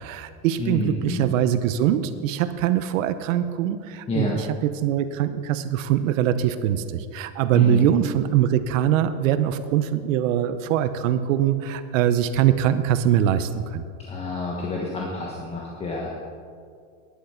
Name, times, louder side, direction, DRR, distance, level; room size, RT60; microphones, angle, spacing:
voice 1, 0.0-13.8, right 10 dB, 90° right, 11 dB, 0.9 m, -22 dB
voice 2, 0.6-1.3 4.1-4.3 7.5-7.9 14.1-16.1, left 2 dB, 15° left, -3 dB, 1.2 m, -28 dB
11.5 x 10.5 x 5.8 m, 2.2 s
supercardioid pair, 160°, 38 cm